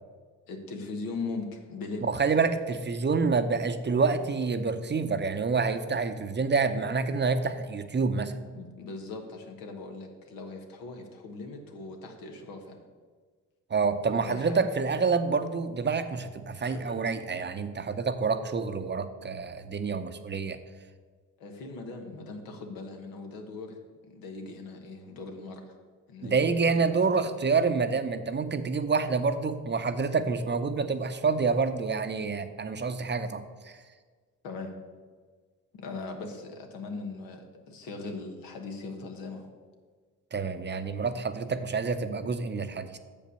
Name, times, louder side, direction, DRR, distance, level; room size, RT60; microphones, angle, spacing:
voice 1, 0.5-2.1 8.5-12.8 14.1-14.7 16.6-17.0 21.4-23.8 24.1-25.8 26.1-27.2 34.4-34.7 35.7-39.5, left 3 dB, 80° left, 4 dB, 1.2 m, -40 dB
voice 2, 2.0-8.3 13.7-20.6 26.2-33.8 40.3-43.0, right 4 dB, 30° right, 10 dB, 0.7 m, -27 dB
6.6 x 5.2 x 6.7 m, 1.5 s
supercardioid pair, 60°, 34 cm